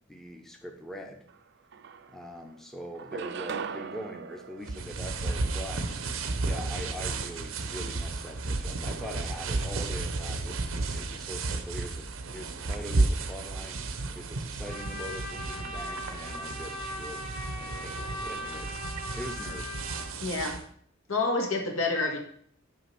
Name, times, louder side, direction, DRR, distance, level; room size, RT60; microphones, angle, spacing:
voice 1, 0.1-1.3 2.1-6.0 6.4-17.2 17.5-19.8, equal, ahead, 3 dB, 0.7 m, -43 dB
sound 1, 1.3-1.4 1.7-2.5 3.0-5.6, right 6 dB, 55° right, 0.4 m, -39 dB
sound 2, 4.6-20.6, right 3 dB, 80° right, 0.8 m, -33 dB
Trumpet, 14.7-20.1, left 1 dB, 25° left, 1.3 m, -39 dB
voice 2, 20.2-20.6 21.1-22.2, left 3 dB, 80° left, 2 dB, 1.8 m, -28 dB
6.4 x 4.9 x 6.9 m, 0.62 s
head